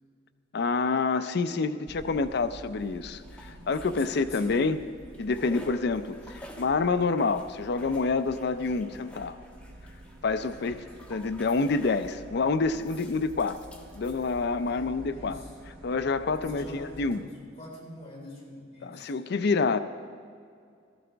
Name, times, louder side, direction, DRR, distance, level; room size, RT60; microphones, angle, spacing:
voice 1, 0.5-4.8 5.2-9.4 10.2-10.8 11.1-13.6 13.9-15.4 15.8-17.3 18.8-19.8, left 4 dB, 60° left, 12 dB, 0.5 m, -27 dB
sound 1, 1.9-17.2, right 1 dB, 50° right, 0.9 m, -49 dB
sound 2, 2.8-4.8 5.0-12.2 12.7-14.7, equal, 5° left, 1.3 m, -52 dB
voice 2, 3.5-4.6 5.4-5.7 10.5-10.8 14.7-15.6 16.4-19.1, left 1 dB, 35° left, -4 dB, 3.5 m, -45 dB
15.5 x 13.5 x 3.4 m, 2.3 s
head